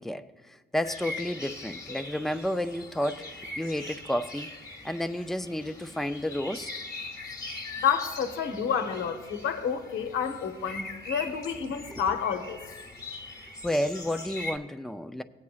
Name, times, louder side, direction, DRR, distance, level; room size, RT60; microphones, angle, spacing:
voice 1, 0.0-4.5 4.8-6.7 11.9-12.0 13.6-15.2, left 1 dB, ahead, 0.4 m, -31 dB
sound 1, 0.8-14.6, left 2 dB, 15° left, 1.0 m, -41 dB
voice 2, 7.8-12.6, left 7 dB, 80° left, 0.8 m, -29 dB
18.0 x 8.4 x 2.4 m
cardioid pair, 90°, 20 cm